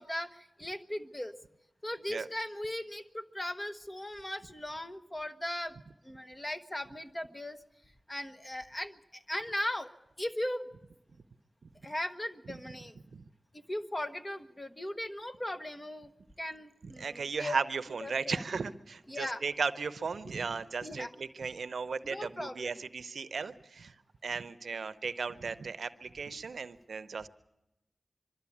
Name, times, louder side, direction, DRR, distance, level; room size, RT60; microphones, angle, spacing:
voice 1, 0.0-1.3 1.8-5.7 6.0-7.6 8.1-9.9 10.2-10.6 11.8-13.0 13.5-16.1 16.4-17.5 18.0-18.4 19.1-19.4 20.8-21.1 22.0-22.7 26.3-26.4, left 1 dB, 25° left, 8 dB, 1.1 m, -38 dB
voice 2, 16.8-23.9 24.2-27.3, right 5 dB, 80° right, 13 dB, 0.7 m, -36 dB
23.5 x 13.0 x 8.5 m, 0.93 s
cardioid pair, 55°, 0 cm